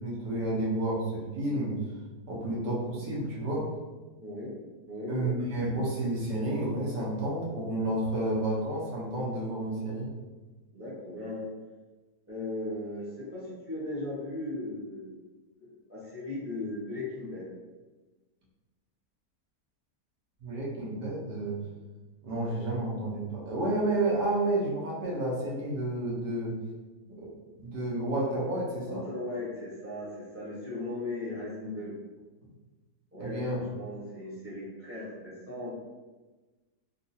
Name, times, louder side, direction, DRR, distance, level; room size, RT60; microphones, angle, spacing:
voice 1, 0.0-1.8 2.3-3.7 5.1-10.1 20.4-21.6 22.2-26.5 27.1-27.3 27.6-29.1 33.2-33.7, right 1 dB, 80° right, -4 dB, 1.4 m, -30 dB
voice 2, 4.2-4.5 4.9-5.3 10.7-11.5 12.3-15.2 15.6-17.4 28.8-31.9 33.1-35.7, left 2 dB, 10° right, -10 dB, 0.8 m, -37 dB
3.7 x 2.3 x 2.7 m, 1.2 s
omnidirectional pair, 1.8 m